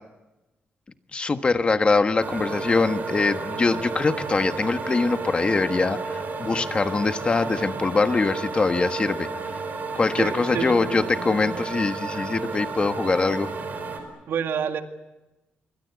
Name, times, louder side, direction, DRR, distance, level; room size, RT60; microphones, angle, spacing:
voice 1, 1.1-9.3 9.9-13.5, left 3 dB, 30° left, 9 dB, 1.3 m, -23 dB
sound 1, 2.2-14.0, right 4 dB, 50° right, 4.9 m, -32 dB
voice 2, 10.2-10.8 12.1-12.3 14.3-14.8, right 7 dB, 80° right, 6 dB, 2.0 m, -28 dB
27.0 x 23.5 x 8.3 m, 1.0 s
wide cardioid pair, 135°, 4 cm